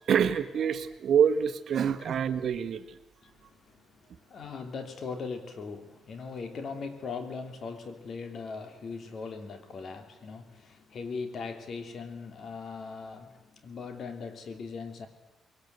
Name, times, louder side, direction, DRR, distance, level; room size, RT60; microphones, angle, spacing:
voice 1, 0.1-2.8, right 8 dB, 60° right, 10 dB, 1.3 m, -26 dB
voice 2, 3.2-3.8 4.2-15.1, left 4 dB, 55° left, 7 dB, 3.0 m, -40 dB
22.5 x 18.0 x 8.1 m, 0.93 s
cardioid pair, 90°, 0 cm